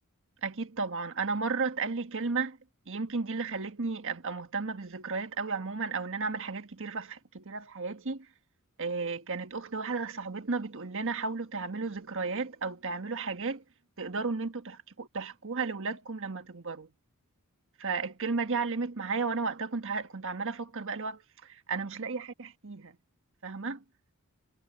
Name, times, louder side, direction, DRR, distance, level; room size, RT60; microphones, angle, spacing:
voice 1, 0.4-2.6 2.9-8.3 8.8-13.6 14.0-16.9 17.8-22.9 23.4-23.8, right 4 dB, 60° right, 1.5 m, -34 dB
head